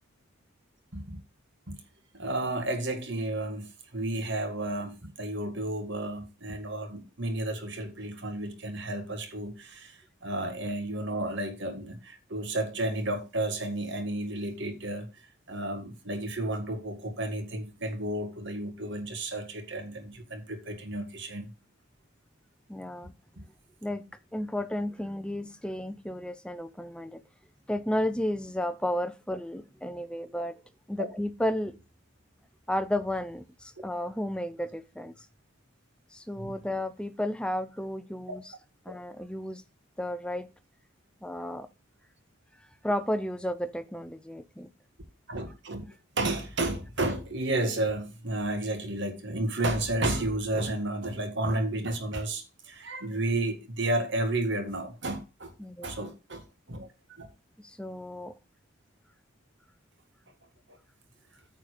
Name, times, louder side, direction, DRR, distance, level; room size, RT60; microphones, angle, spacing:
voice 1, 2.1-15.1 15.5-21.5 23.4-23.5 31.0-31.1 36.4-36.5 38.3-38.4 45.3-45.8 46.2-55.5 55.8-57.3, right 1 dB, 55° right, 1.9 m, -32 dB
voice 2, 22.7-23.1 23.8-24.0 24.3-27.2 27.7-30.6 30.9-31.8 32.7-35.1 36.1-38.4 38.9-39.6 40.0-40.5 41.2-41.7 42.8-44.7 55.6-56.1 57.6-58.3, left 1 dB, 5° left, 0.6 m, -33 dB
9.3 x 4.2 x 6.6 m
head